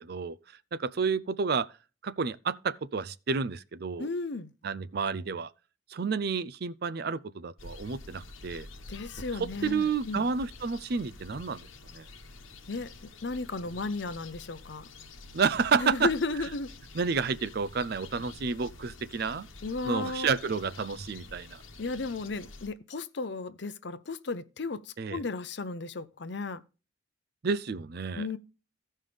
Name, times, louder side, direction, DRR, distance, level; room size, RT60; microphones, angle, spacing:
voice 1, 0.7-1.7 2.0-4.1 4.6-5.5 5.9-8.7 9.4-11.7 11.9-12.0 15.3-16.1 16.9-19.5 19.8-21.6 25.0-25.2 27.4-28.3, right 5 dB, 50° right, 0.5 m, -30 dB
voice 2, 4.0-4.5 8.9-10.2 12.7-12.9 13.2-14.9 15.7-16.7 19.6-20.4 21.8-26.6 28.1-28.4, left 3 dB, 60° left, 0.7 m, -34 dB
sound 1, 7.6-22.7, left 3 dB, 85° left, 1.2 m, -48 dB
16.0 x 5.5 x 3.3 m
head